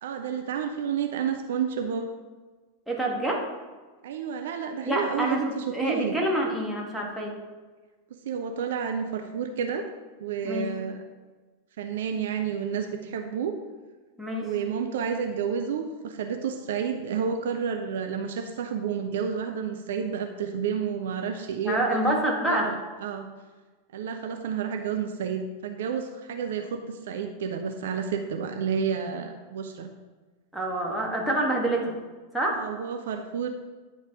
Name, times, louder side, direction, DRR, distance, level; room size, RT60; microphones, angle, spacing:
voice 1, 0.0-2.0 4.0-6.1 8.2-9.9 10.2-11.0 11.8-13.6 14.4-22.2 22.5-23.3 23.9-29.9 32.5-33.5, right 7 dB, 60° right, 5 dB, 0.5 m, -30 dB
voice 2, 2.9-3.5 4.8-7.4 10.4-10.7 14.2-14.5 21.6-22.7 30.5-32.0 32.3-32.6, right 1 dB, ahead, -3 dB, 1.6 m, -27 dB
10.0 x 4.0 x 4.8 m, 1.3 s
figure-of-eight pair, 90°, 0 cm